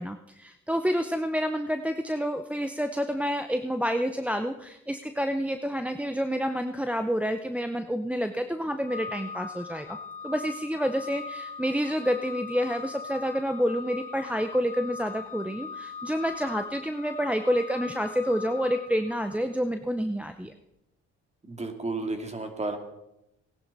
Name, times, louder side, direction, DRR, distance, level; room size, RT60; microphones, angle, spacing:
voice 1, 0.0-10.0 10.2-20.6, equal, 5° right, 7 dB, 0.7 m, -28 dB
Organ, 8.8-19.6, left 4 dB, 25° left, 1.1 m, -40 dB
voice 2, 21.5-22.8, right 2 dB, 20° right, 5 dB, 2.4 m, -32 dB
18.5 x 11.0 x 4.2 m, 0.87 s
cardioid pair, 90°, 30 cm